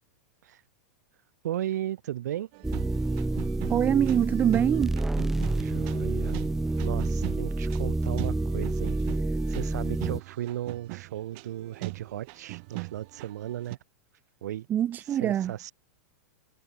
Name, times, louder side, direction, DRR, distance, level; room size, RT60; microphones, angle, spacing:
voice 1, 1.4-2.5 5.6-6.4 6.8-9.0 9.3-13.8 14.4-14.7 15.2-15.7, right 12 dB, 75° right, 1.9 m, -35 dB
sound 1, 2.5-13.8, right 33 dB, 40° right, 1.3 m, -41 dB
sound 2, 2.6-10.2, right 2 dB, 5° right, 0.4 m, -28 dB
voice 2, 3.7-4.9 14.7-15.5, right 10 dB, 20° right, 0.8 m, -24 dB
supercardioid pair, 160°, 9 cm